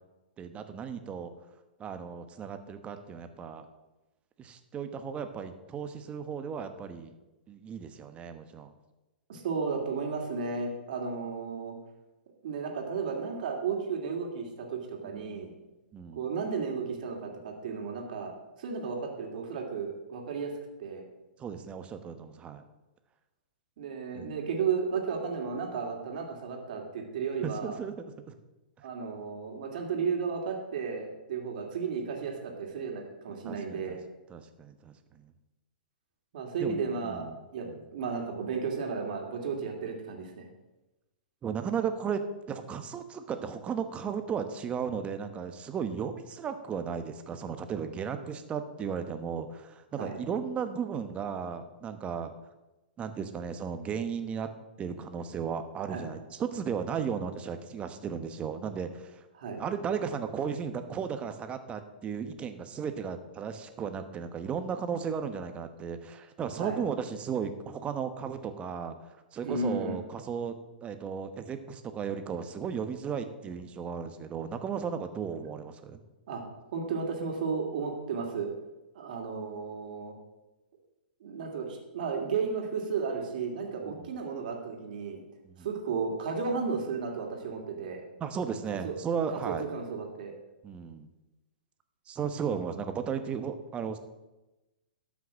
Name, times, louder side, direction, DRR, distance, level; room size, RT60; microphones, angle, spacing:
voice 1, 0.4-1.3 1.8-3.6 4.4-7.1 7.5-8.7 15.0-15.4 15.9-16.2 21.4-22.6 24.1-24.3 27.4-28.3 33.3-34.0 34.3-35.3 36.6-37.4 37.6-37.8 41.4-52.3 53.0-54.5 54.8-59.2 59.6-68.9 69.3-70.6 70.8-76.0 83.8-84.1 85.4-85.7 88.2-89.6 90.6-91.1 92.1-94.0, right 7 dB, 20° right, 8 dB, 1.1 m, -35 dB
voice 2, 9.3-11.7 12.4-15.5 16.1-18.3 18.6-20.5 20.8-21.0 23.8-27.8 28.8-34.0 36.3-37.7 37.9-40.5 50.0-50.2 55.9-56.0 59.4-59.6 66.6-66.8 69.4-70.0 76.3-76.4 76.7-78.5 78.9-80.1 81.2-85.2 85.6-88.1 88.8-88.9 89.3-90.3, right 5 dB, 60° right, 2 dB, 2.5 m, -33 dB
13.0 x 6.0 x 6.3 m, 1.0 s
hypercardioid pair, 115°, 5 cm